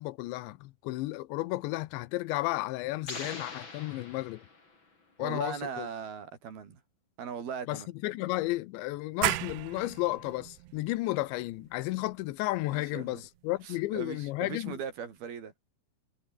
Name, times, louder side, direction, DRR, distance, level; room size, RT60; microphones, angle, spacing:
voice 1, 0.0-4.4 5.2-5.9 7.7-14.8, left 18 dB, 85° left, 3.1 m, -33 dB
sound 1, 3.0-4.9, left 3 dB, 25° left, 5.2 m, -43 dB
voice 2, 5.2-6.8 7.2-7.9 12.7-13.2 13.6-15.5, right 7 dB, 60° right, 5.2 m, -39 dB
sound 2, 9.2-14.6, right 17 dB, 75° right, 2.8 m, -37 dB
omnidirectional pair, 5.1 m